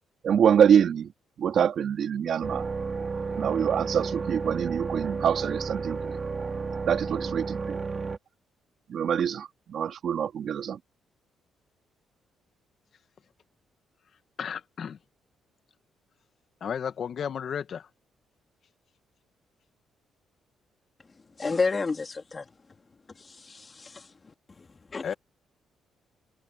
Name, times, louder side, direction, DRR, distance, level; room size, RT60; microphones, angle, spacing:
voice 1, 0.2-1.1 1.4-2.6 3.4-6.2 6.8-7.8 8.9-10.8, right 8 dB, 60° right, 3.4 m, -25 dB
sound 1, 2.4-8.2, right 4 dB, 35° right, 3.9 m, -32 dB
voice 2, 14.4-15.0 16.6-17.9 25.0-25.1, left 7 dB, 55° left, 1.6 m, -33 dB
voice 3, 21.4-22.5 23.2-25.1, left 4 dB, 30° left, 2.4 m, -31 dB
cardioid pair, 90°, 0 cm